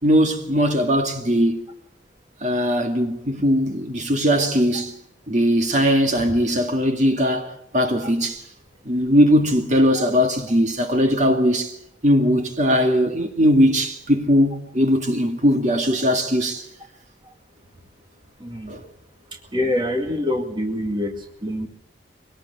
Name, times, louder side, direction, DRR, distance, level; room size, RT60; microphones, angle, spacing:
voice 1, 0.0-1.7 2.4-4.9 5.3-8.4 8.8-11.7 12.0-16.7 18.7-18.9, equal, 40° right, 2.1 m, -19 dB
voice 2, 18.4-18.7 19.3-21.7, left 1 dB, 25° right, 2.1 m, -26 dB
23.5 x 18.5 x 8.2 m
head